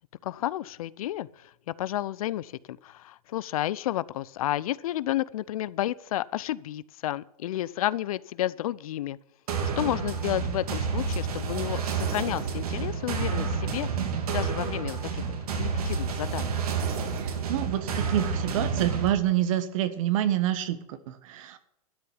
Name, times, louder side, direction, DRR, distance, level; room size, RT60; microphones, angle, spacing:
voice 1, 0.2-9.2 9.8-13.9 14.3-16.5, left 13 dB, 70° left, 20 dB, 0.6 m, -31 dB
sound 1, 9.5-19.1, right 5 dB, 75° right, 2.8 m, -29 dB
voice 2, 17.1-21.6, right 12 dB, 60° right, 11 dB, 1.5 m, -27 dB
12.5 x 6.8 x 9.9 m, 0.81 s
hypercardioid pair, 120°, 19 cm